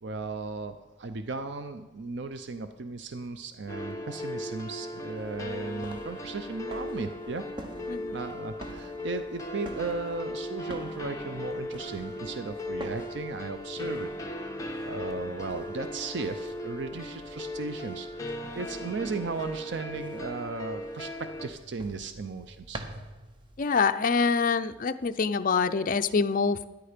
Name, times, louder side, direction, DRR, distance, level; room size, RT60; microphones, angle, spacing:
voice 1, 0.0-7.5 8.1-14.4 14.9-18.1 18.5-22.8, right 3 dB, 60° right, 9 dB, 0.6 m, -36 dB
sound 1, 3.7-21.5, left 1 dB, 15° left, 1.0 m, -37 dB
sound 2, 5.2-23.7, right 1 dB, 25° right, 0.9 m, -48 dB
voice 2, 7.9-8.2 15.3-15.4 23.6-26.7, left 5 dB, 45° left, 9 dB, 0.5 m, -25 dB
13.0 x 10.5 x 5.1 m, 1.1 s
head